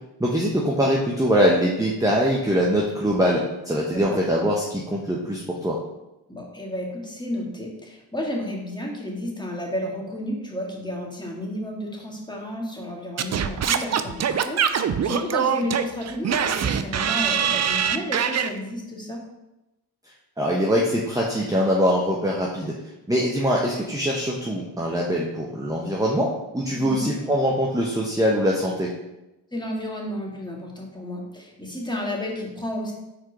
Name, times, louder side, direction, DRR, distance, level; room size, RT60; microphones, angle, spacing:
voice 1, 0.2-5.8 20.4-22.7 23.1-28.9, equal, 5° right, -2 dB, 1.1 m, -23 dB
voice 2, 3.9-4.2 6.3-19.2 26.7-27.1 29.5-32.9, left 1 dB, 10° left, -1 dB, 1.9 m, -32 dB
Singing / Scratching (performance technique), 13.2-18.5, right 8 dB, 35° right, 0.5 m, -23 dB
4.6 x 4.4 x 4.8 m, 0.96 s
hypercardioid pair, 45°, 49 cm